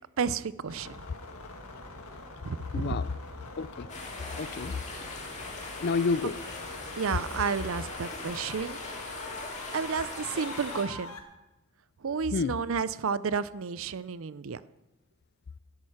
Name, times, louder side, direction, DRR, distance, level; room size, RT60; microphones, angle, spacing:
voice 1, 0.2-0.9 2.5-2.9 7.0-8.8 9.7-11.2 12.0-14.6, right 6 dB, 60° right, 16 dB, 0.5 m, -31 dB
sound 1, 0.7-11.2, left 2 dB, 80° left, 1.8 m, -44 dB
voice 2, 2.7-3.1 3.6-3.9 4.4-4.7 5.8-6.6 12.3-12.6, left 4 dB, 45° left, 17 dB, 0.4 m, -29 dB
sound 2, 3.9-10.8, left 2 dB, 30° left, 2.2 m, -41 dB
12.0 x 11.0 x 5.8 m, 0.99 s
head